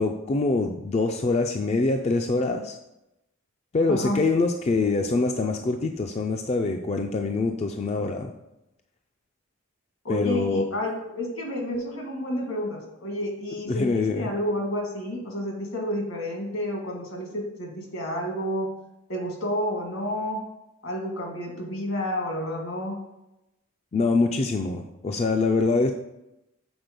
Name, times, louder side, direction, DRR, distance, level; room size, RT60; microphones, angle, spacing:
voice 1, 0.0-2.8 3.7-8.3 10.1-10.6 13.7-14.3 23.9-25.9, left 3 dB, 30° left, 4 dB, 0.3 m, -24 dB
voice 2, 10.0-18.7 19.1-20.4 20.8-23.0, left 1 dB, 75° left, 1 dB, 1.8 m, -30 dB
6.1 x 4.1 x 5.1 m, 0.91 s
head